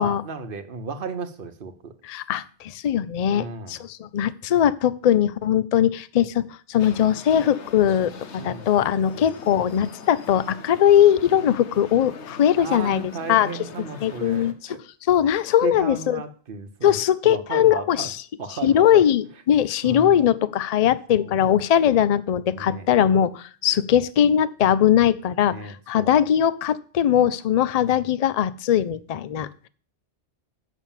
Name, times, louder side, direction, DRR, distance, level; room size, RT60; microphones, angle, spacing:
voice 1, 0.0-1.9 3.3-3.8 4.5-4.6 8.4-8.7 9.1-9.3 12.6-14.8 15.6-17.0 17.2-18.1 18.4-19.0 19.8-20.2 21.2-21.4 22.5-22.9 25.5-26.2 27.8-28.1, right 4 dB, 55° right, 8 dB, 1.1 m, -34 dB
voice 2, 2.0-13.5 14.0-14.8 15.1-16.2 16.8-18.2 18.6-29.5, left 10 dB, 55° left, 16 dB, 0.4 m, -20 dB
sound 1, 6.8-14.5, left 5 dB, 80° left, 1.2 m, -42 dB
7.2 x 6.2 x 7.2 m, 0.42 s
omnidirectional pair, 1.2 m